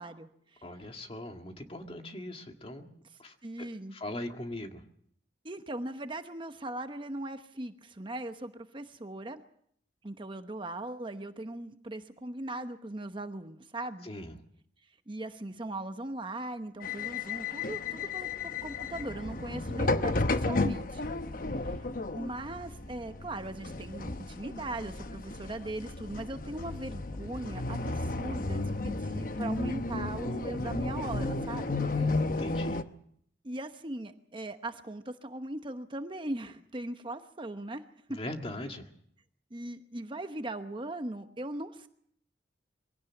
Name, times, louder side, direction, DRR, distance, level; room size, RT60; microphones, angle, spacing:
voice 1, 0.0-0.6 3.1-3.9 5.4-9.4 10.0-14.1 15.1-21.0 21.6-31.8 33.4-37.8 38.1-38.2 39.5-41.9, right 1 dB, 30° right, 8 dB, 1.0 m, -39 dB
voice 2, 0.6-2.9 3.2-3.3 3.9-4.8 14.0-14.3 32.0-32.8 38.1-38.9, left 1 dB, 30° left, 4 dB, 1.9 m, -40 dB
sound 1, 16.8-32.8, left 2 dB, 50° left, 0.9 m, -33 dB
22.5 x 17.0 x 7.2 m, 0.66 s
head